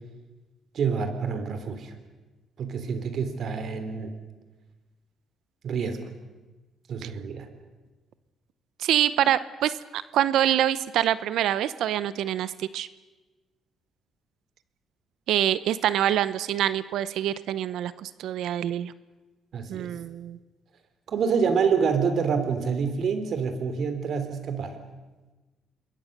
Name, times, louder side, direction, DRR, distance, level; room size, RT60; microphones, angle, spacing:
voice 1, 0.7-1.9 2.6-4.2 5.6-6.0 6.9-7.5 19.5-19.9 21.1-24.8, right 6 dB, 60° right, 9 dB, 3.3 m, -27 dB
voice 2, 8.8-12.9 15.3-18.9 19.7-20.4, right 11 dB, 80° right, 16 dB, 0.7 m, -25 dB
27.0 x 21.5 x 6.6 m, 1.2 s
cardioid pair, 90°, 0 cm